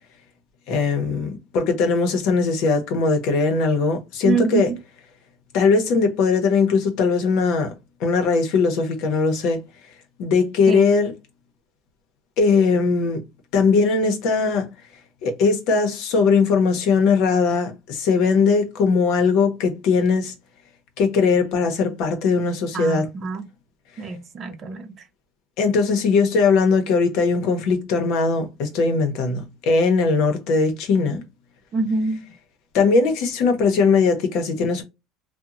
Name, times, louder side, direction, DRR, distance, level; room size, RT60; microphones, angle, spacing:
voice 1, 0.7-4.7 5.5-7.7 8.0-9.6 10.2-11.1 12.4-13.2 13.5-14.7 15.2-20.3 21.0-23.1 25.6-31.2 32.7-34.8, left 4 dB, 70° left, 0.8 m, -20 dB
voice 2, 4.2-4.8 10.7-10.8 22.7-23.5 24.0-24.9 31.7-32.3, right 4 dB, 40° right, 0.6 m, -25 dB
2.8 x 2.2 x 2.4 m
cardioid pair, 130°, 0 cm